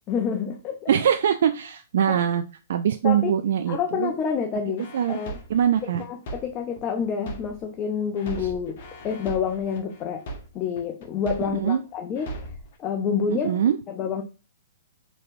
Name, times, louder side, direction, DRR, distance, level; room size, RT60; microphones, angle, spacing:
voice 1, 0.1-0.9 2.1-2.2 3.0-3.3 3.7-5.4 6.1-10.2 10.5-12.4 12.8-13.6 13.9-14.2, left 6 dB, 30° left, 0.5 m, -28 dB
voice 2, 0.9-2.4 2.7-4.1 4.9-5.2 5.5-6.0 8.4-8.5 11.5-11.8 13.3-13.8, right 9 dB, 60° right, 0.3 m, -23 dB
sound 1, 4.8-7.8 8.2-11.8 12.2-12.8, right 1 dB, 50° left, 1.1 m, -39 dB
4.2 x 3.1 x 2.6 m
figure-of-eight pair, 115°, 0 cm